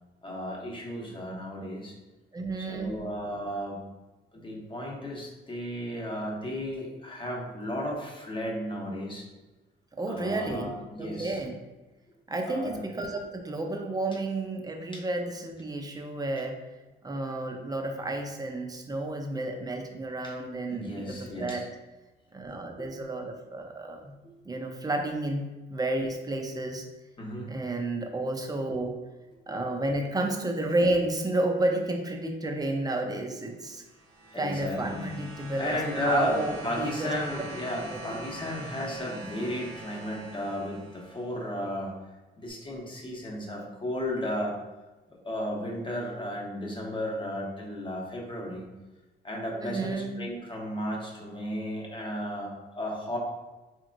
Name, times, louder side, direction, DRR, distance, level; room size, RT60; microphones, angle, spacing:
voice 1, 0.2-1.9 2.6-3.8 4.3-9.3 10.0-11.4 12.5-12.8 20.2-20.3 20.7-21.6 27.2-27.5 34.3-35.1 35.6-41.9 42.4-44.5 45.1-48.6 49.2-53.2, equal, 25° left, -2 dB, 0.9 m, -34 dB
voice 2, 2.3-3.0 10.0-10.7 11.0-11.6 12.3-16.6 17.0-21.6 22.3-24.1 24.5-26.8 27.5-28.9 29.5-33.8 34.3-35.8 36.0-37.1 37.4-37.5 37.8-38.2 49.5-50.1, right 2 dB, 20° right, 3 dB, 0.5 m, -31 dB
sound 1, 33.7-41.4 42.5-42.6, right 1 dB, 85° right, 1.0 m, -44 dB
4.2 x 3.0 x 2.5 m, 1.2 s
cardioid pair, 90°, 20 cm